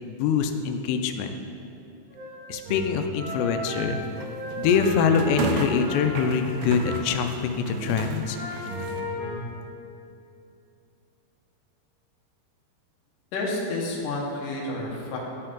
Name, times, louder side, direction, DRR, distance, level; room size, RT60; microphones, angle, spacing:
voice 1, 0.0-1.4 2.5-4.0 4.6-8.4, left 6 dB, 85° left, 7 dB, 2.7 m, -24 dB
sound 1, 2.1-7.3 7.6-9.4, equal, 60° right, 2.1 m, -34 dB
sound 2, 3.8-9.0, right 3 dB, 80° right, 2.2 m, -34 dB
voice 2, 13.3-15.2, left 2 dB, 65° left, -3 dB, 2.3 m, -30 dB
12.5 x 4.6 x 3.7 m, 2.7 s
omnidirectional pair, 4.9 m